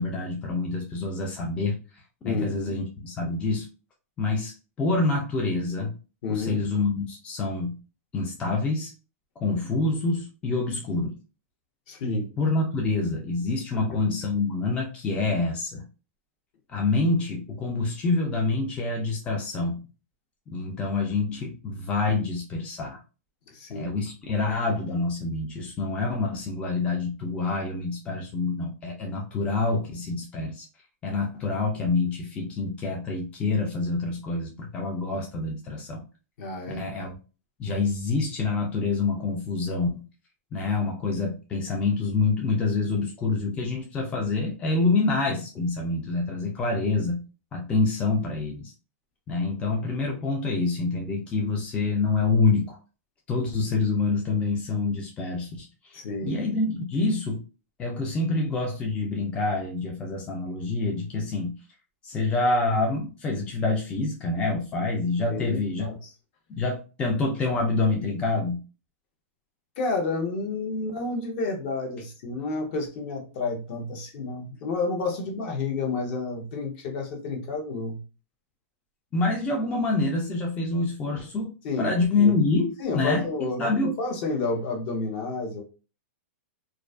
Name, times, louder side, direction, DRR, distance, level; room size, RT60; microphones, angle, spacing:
voice 1, 0.0-3.7 4.2-5.9 6.3-7.8 8.1-8.9 9.4-11.2 12.4-15.8 16.7-19.8 20.5-23.0 23.7-30.6 31.0-36.0 36.8-37.1 37.6-40.0 40.5-47.2 47.5-48.7 49.3-52.8 53.3-57.4 57.8-61.5 62.0-65.9 66.5-68.6 79.1-83.3 83.6-83.9, left 3 dB, 15° left, 0 dB, 0.3 m, -27 dB
voice 2, 2.2-2.8 6.2-6.6 11.9-12.3 13.7-14.0 23.5-23.9 36.4-36.9 55.9-56.4 65.3-66.1 69.8-78.0 81.6-82.4 82.8-85.6, left 3 dB, 45° left, 3 dB, 0.7 m, -30 dB
2.4 x 2.3 x 2.2 m, 0.33 s
hypercardioid pair, 145°, 8 cm